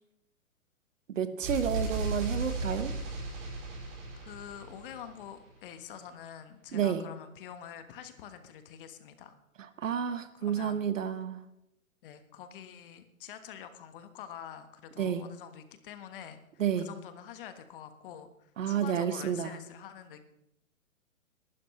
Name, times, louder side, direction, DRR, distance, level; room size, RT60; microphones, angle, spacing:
voice 1, 1.1-2.9 6.7-7.0 9.6-11.4 15.0-15.2 16.6-16.9 18.6-19.6, right 8 dB, 65° right, 11 dB, 1.4 m, -30 dB
sound 1, 1.4-5.3, right 2 dB, 30° right, 5.3 m, -35 dB
voice 2, 4.2-9.3 10.3-10.8 12.0-16.4 16.8-20.2, left 9 dB, 40° left, 9 dB, 1.4 m, -46 dB
18.0 x 12.5 x 3.2 m, 0.82 s
hypercardioid pair, 135°, 42 cm